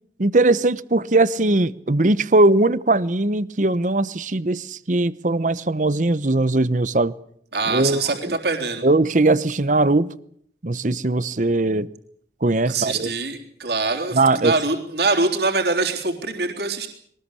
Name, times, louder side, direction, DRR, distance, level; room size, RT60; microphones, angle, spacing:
voice 1, 0.2-7.1 7.7-8.4 8.8-10.1 10.6-11.9 12.4-13.1 14.1-14.5, right 2 dB, 45° right, 0.9 m, -20 dB
voice 2, 7.5-8.8 12.7-16.9, right 3 dB, 65° right, 3.7 m, -24 dB
23.0 x 19.5 x 8.4 m
head